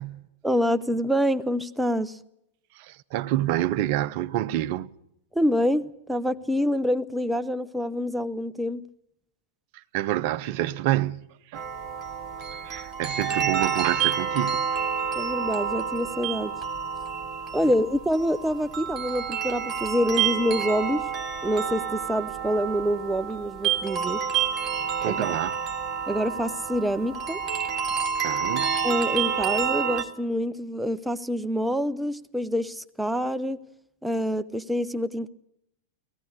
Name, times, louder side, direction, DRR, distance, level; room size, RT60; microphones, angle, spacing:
voice 1, 0.4-2.2 5.3-8.8 15.1-16.5 17.5-21.0 21.4-24.2 25.0-25.3 26.1-27.4 28.8-33.6 34.0-35.3, equal, 5° right, 0.7 m, -26 dB
voice 2, 2.7-4.9 9.7-11.6 12.5-14.7 25.0-25.6 28.2-28.8, right 14 dB, 50° right, 0.7 m, -28 dB
sound 1, 11.5-30.0, right 7 dB, 25° right, 2.3 m, -29 dB
17.5 x 15.5 x 9.7 m
figure-of-eight pair, 90°, 0 cm